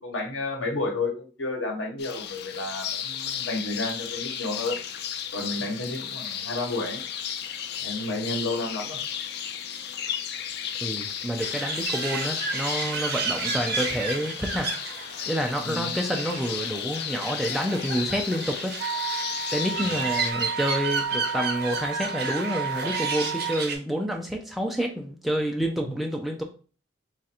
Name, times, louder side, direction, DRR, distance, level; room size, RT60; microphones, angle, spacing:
voice 1, 0.0-4.8 5.3-7.0 7.8-9.0 15.6-15.9 19.8-20.0 25.9-26.0, left 2 dB, 85° left, 1.1 m, -31 dB
sound 1, 2.0-20.3, left 9 dB, 55° left, 0.3 m, -34 dB
voice 2, 10.8-14.7 15.3-18.8 19.5-26.4, equal, ahead, 0.5 m, -28 dB
sound 2, 11.4-23.8, right 3 dB, 50° right, 0.9 m, -32 dB
Wind instrument woodwind instrument, 18.8-23.6, right 6 dB, 70° right, 0.5 m, -32 dB
3.1 x 2.5 x 4.3 m
head